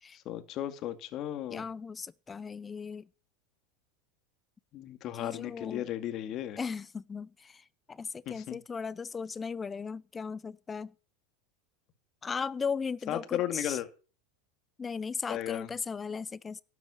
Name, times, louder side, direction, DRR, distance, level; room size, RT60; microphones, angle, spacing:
voice 1, 0.3-1.7 4.7-6.6 8.3-8.6 13.1-13.9 15.3-15.7, left 12 dB, 45° left, 2.2 m, -35 dB
voice 2, 1.5-3.1 5.1-5.8 6.6-10.9 12.2-13.8 14.8-16.6, left 5 dB, 20° left, 0.6 m, -37 dB
12.5 x 9.3 x 7.1 m
hypercardioid pair, 100°, 0 cm